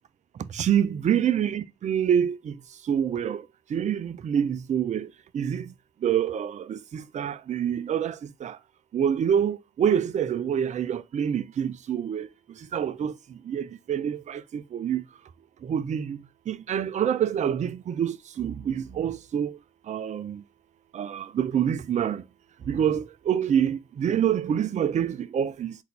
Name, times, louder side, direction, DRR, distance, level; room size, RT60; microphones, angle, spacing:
voice 1, 0.5-2.6 2.9-5.1 5.3-5.7 6.0-8.6 8.9-13.2 13.5-15.0 15.6-16.2 16.5-19.6 19.9-20.4 20.9-22.2 22.7-25.8, right 9 dB, 40° right, 0.5 m, -26 dB
4.1 x 2.6 x 4.0 m
hypercardioid pair, 55°, 18 cm